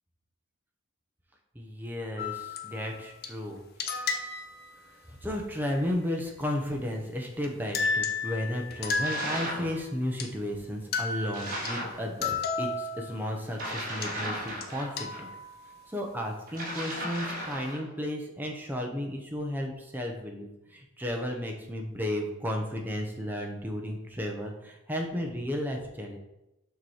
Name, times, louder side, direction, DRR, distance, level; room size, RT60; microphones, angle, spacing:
voice 1, 1.5-3.6 4.0-4.1 5.1-15.3 15.9-26.2, left 1 dB, 10° right, 1 dB, 0.7 m, -33 dB
sound 1, 2.2-3.3 3.8-4.7 7.4-7.5 7.7-9.8 10.2-10.3 10.9-13.3 14.0-14.1 14.6-14.7 15.0-16.0, left 4 dB, 45° left, 0.6 m, -33 dB
sound 2, 9.0-9.7 11.3-12.0 13.5-15.2 16.5-17.9, equal, 40° right, 1.7 m, -35 dB
6.5 x 3.0 x 4.8 m, 0.92 s
head